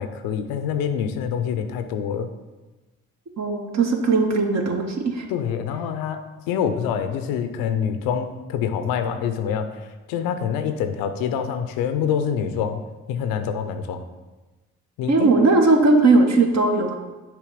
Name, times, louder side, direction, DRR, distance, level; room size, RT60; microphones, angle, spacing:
voice 1, 0.0-2.3 5.3-6.2 6.5-9.7 10.1-12.8 13.1-14.0 15.0-15.3, left 7 dB, 85° left, 9 dB, 0.5 m, -26 dB
voice 2, 3.4-5.3 15.1-17.0, right 3 dB, 50° right, 4 dB, 1.0 m, -18 dB
6.8 x 3.1 x 4.9 m, 1.2 s
supercardioid pair, 50°, 35 cm